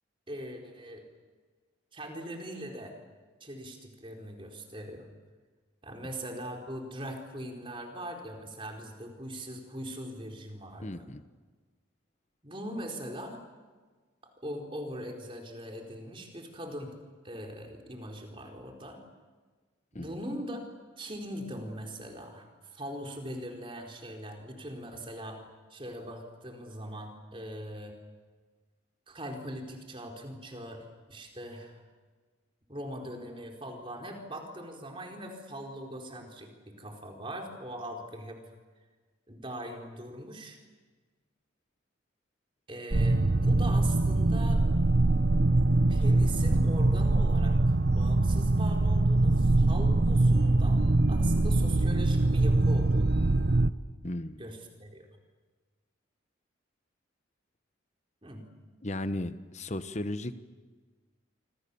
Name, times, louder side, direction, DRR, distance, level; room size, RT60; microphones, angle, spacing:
voice 1, 0.3-1.0 1.9-3.0 3.4-5.1 5.8-11.0 12.4-13.4 14.2-16.9 17.2-19.0 19.9-20.7 21.0-25.4 25.7-28.0 29.1-31.8 32.7-38.4 39.3-40.6 42.7-44.6 45.9-50.8 51.1-53.2 54.4-55.1 58.2-58.4, right 1 dB, 25° right, 2 dB, 4.2 m, -41 dB
voice 2, 10.8-11.2 19.9-20.1 54.0-54.4 58.8-60.4, left 1 dB, 35° left, 11 dB, 1.2 m, -35 dB
sound 1, 42.9-53.7, right 2 dB, 55° right, 0.8 m, -23 dB
26.5 x 26.5 x 7.1 m, 1.4 s
head